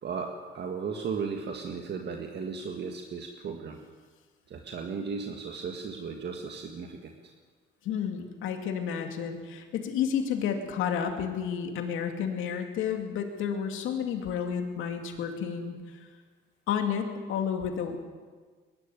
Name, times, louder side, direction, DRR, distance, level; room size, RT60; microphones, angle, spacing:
voice 1, 0.0-3.8 4.5-7.3, right 5 dB, 60° right, 3 dB, 1.8 m, -36 dB
voice 2, 7.8-16.1 16.7-18.0, left 7 dB, 90° left, 4 dB, 2.5 m, -31 dB
22.0 x 12.5 x 9.4 m, 1.5 s
cardioid pair, 90°, 20 cm